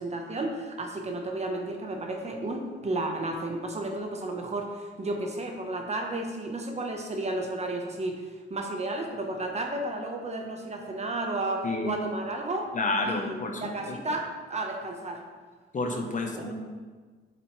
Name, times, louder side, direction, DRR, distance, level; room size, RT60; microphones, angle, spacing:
voice 1, 0.0-8.2 8.5-12.7 13.0-15.2 16.3-16.5, right 2 dB, 35° right, 2 dB, 1.2 m, -32 dB
voice 2, 11.6-12.0 12.7-14.0 15.7-16.5, left 2 dB, 40° left, 3 dB, 1.1 m, -30 dB
7.6 x 7.2 x 3.3 m, 1.4 s
cardioid pair, 90°, 20 cm